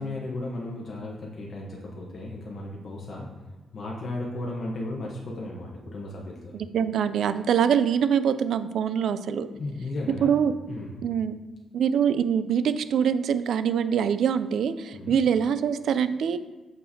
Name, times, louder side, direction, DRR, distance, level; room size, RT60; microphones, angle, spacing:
voice 1, 0.0-3.3 3.7-6.6 9.5-10.3 10.7-10.9 14.9-15.2, left 2 dB, 50° left, -3 dB, 0.9 m, -35 dB
voice 2, 6.5-9.5 10.2-10.5 11.0-11.4 11.7-16.4, right 8 dB, 75° right, 13 dB, 0.3 m, -24 dB
6.7 x 5.5 x 2.7 m, 1.2 s
cardioid pair, 110°, 0 cm